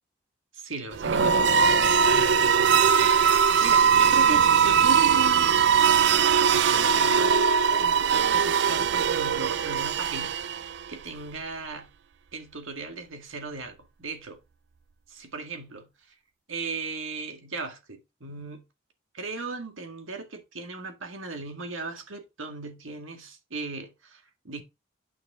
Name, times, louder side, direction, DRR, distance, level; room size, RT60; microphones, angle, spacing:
voice 1, 0.5-10.3 10.9-11.9 12.3-14.4 15.1-15.9 16.5-18.6 19.1-24.6, right 3 dB, 80° right, 1.8 m, -37 dB
sound 1, 0.9-10.9, right 7 dB, 55° right, 0.4 m, -21 dB
9.2 x 6.0 x 3.6 m
head